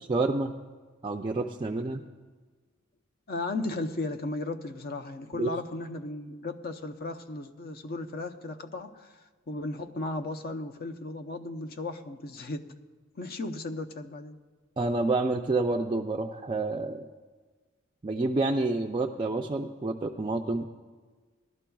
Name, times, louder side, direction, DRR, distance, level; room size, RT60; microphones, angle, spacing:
voice 1, 0.1-0.5 1.0-2.0 5.4-5.5 14.8-17.1 18.0-20.7, right 2 dB, 25° right, 2 dB, 0.4 m, -28 dB
voice 2, 3.3-12.6 13.2-14.4, left 2 dB, 50° left, 7 dB, 0.7 m, -35 dB
19.5 x 12.0 x 2.3 m, 1.4 s
head